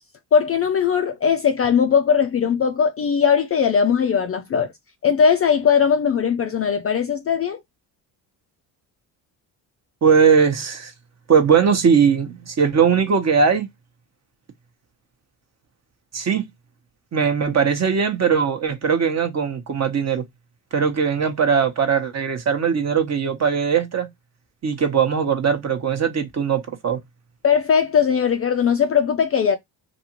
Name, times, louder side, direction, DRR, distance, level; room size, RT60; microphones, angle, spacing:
voice 1, 0.3-4.7 5.0-7.6 27.4-29.6, left 7 dB, 35° left, 0.4 m, -19 dB
voice 2, 10.0-10.9 11.3-13.7 16.1-16.4 17.1-20.2 20.7-24.1 24.6-27.0, right 6 dB, 35° right, 0.8 m, -19 dB
2.6 x 2.5 x 2.9 m
supercardioid pair, 75°, 46 cm